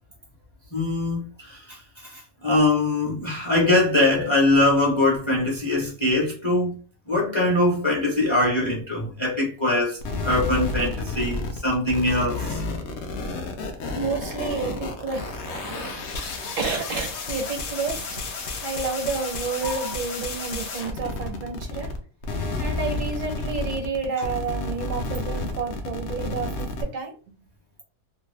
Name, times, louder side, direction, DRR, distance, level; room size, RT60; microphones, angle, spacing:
voice 1, 0.7-1.8 2.1-6.8 7.1-12.6 19.6-19.7, left 2 dB, 25° left, 0.8 m, -22 dB
sound 1, 10.0-22.0 22.2-26.8, left 3 dB, 60° left, 0.8 m, -31 dB
voice 2, 13.9-21.9 22.6-27.1, right 4 dB, 70° right, 1.2 m, -30 dB
2.8 x 2.3 x 3.2 m
omnidirectional pair, 1.5 m